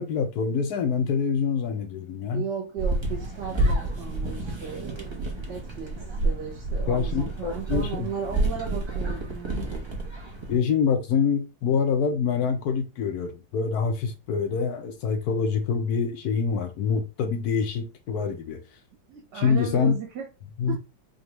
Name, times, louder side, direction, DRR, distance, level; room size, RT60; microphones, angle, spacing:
voice 1, 0.0-2.4 6.9-8.1 10.5-18.6 19.3-20.0 20.6-20.8, left 6 dB, 65° left, 1.0 m, -25 dB
voice 2, 2.3-9.7 19.1-20.3 20.6-20.8, right 7 dB, 65° right, 1.6 m, -36 dB
sound 1, 2.8-10.5, right 2 dB, 30° right, 0.5 m, -29 dB
5.0 x 2.4 x 3.0 m
omnidirectional pair, 2.1 m